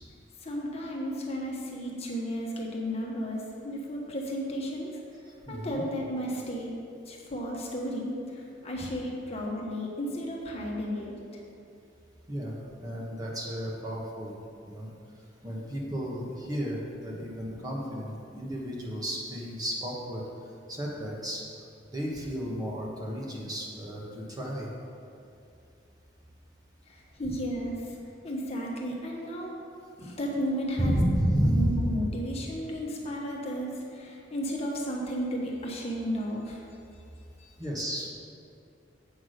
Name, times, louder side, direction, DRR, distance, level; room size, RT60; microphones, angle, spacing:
voice 1, 0.4-5.0 5.5-6.7 7.0-11.2 26.9-28.0 28.2-29.6 30.0-31.0 31.4-36.6 37.4-37.5, equal, 35° left, -2 dB, 1.2 m, -33 dB
voice 2, 5.5-5.8 12.3-12.5 12.8-14.3 14.7-14.9 15.4-20.2 20.7-21.4 21.9-24.7 27.2-27.3 30.8-31.7 37.6-38.1, equal, 20° right, -3 dB, 1.2 m, -31 dB
8.2 x 5.9 x 6.4 m, 2.5 s
head